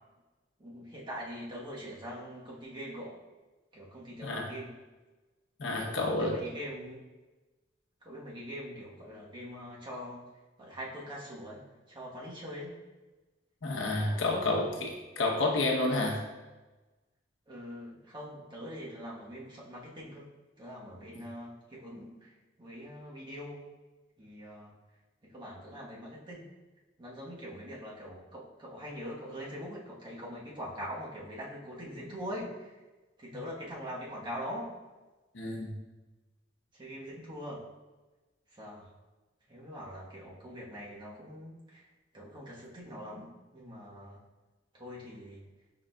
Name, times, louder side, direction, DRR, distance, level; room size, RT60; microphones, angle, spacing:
voice 1, 0.6-3.2 3.7-4.7 5.7-7.0 8.0-10.2 10.6-11.6 11.9-12.7 13.9-14.6 17.5-20.3 20.6-23.7 24.2-24.7 25.2-26.5 27.0-32.8 33.2-34.7 36.7-37.6 38.5-38.9 39.5-41.9 42.1-44.2 44.7-45.4, equal, 25° right, -5 dB, 1.0 m, -43 dB
voice 2, 5.6-6.4 13.6-16.2 35.3-35.8, left 2 dB, 85° left, 0 dB, 0.8 m, -30 dB
5.8 x 3.8 x 2.2 m, 1.2 s
head